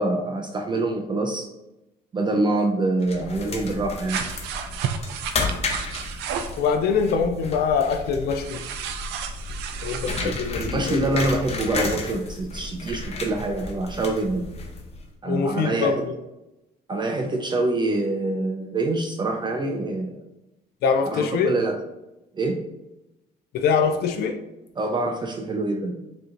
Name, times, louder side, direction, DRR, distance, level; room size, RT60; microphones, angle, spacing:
voice 1, 0.0-1.5 2.1-4.2 10.2-14.5 15.2-16.0 16.9-20.2 21.1-21.8 22.3-22.6 24.8-26.0, right 2 dB, 25° right, 3 dB, 0.4 m, -25 dB
sound 1, 3.0-15.1, left 3 dB, 40° left, 0.8 m, -33 dB
sound 2, 4.1-6.6 8.4-10.3, right 8 dB, 90° right, 0.5 m, -32 dB
voice 2, 6.6-8.6 9.8-11.0 15.3-16.1 20.8-21.5 23.5-24.4, left 6 dB, 70° left, 5 dB, 0.5 m, -23 dB
5.1 x 2.9 x 2.5 m, 0.95 s
cardioid pair, 110°, 17 cm